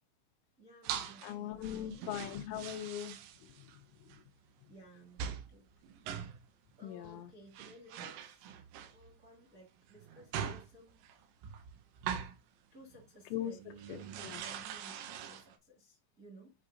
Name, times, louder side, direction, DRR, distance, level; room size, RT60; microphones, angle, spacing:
voice 1, 0.6-2.1 4.7-5.6 6.8-8.5 8.9-11.0 12.7-13.6 14.0-16.5, right 1 dB, 30° right, 1.6 m, -57 dB
sound 1, 0.8-1.4 1.6-3.8 4.1-4.2 5.2-5.5 5.8-6.5 7.2-7.3 7.5-9.2 9.9-12.4 12.9-13.1 13.5-15.6, right 8 dB, 80° right, 3.5 m, -43 dB
voice 2, 1.2-3.2 6.8-7.3 13.3-14.4, left 11 dB, 80° left, 2.9 m, -40 dB
9.1 x 4.8 x 2.5 m
omnidirectional pair, 5.8 m